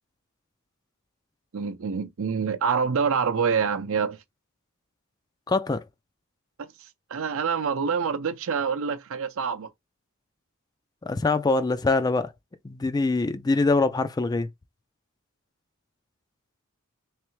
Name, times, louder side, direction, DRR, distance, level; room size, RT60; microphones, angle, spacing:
voice 1, 1.5-4.2 6.6-6.7 7.1-9.7, right 6 dB, 70° right, 0.6 m, -26 dB
voice 2, 5.5-5.8 11.0-12.3 12.6-14.5, left 3 dB, 20° left, 0.3 m, -24 dB
3.4 x 3.3 x 3.1 m
head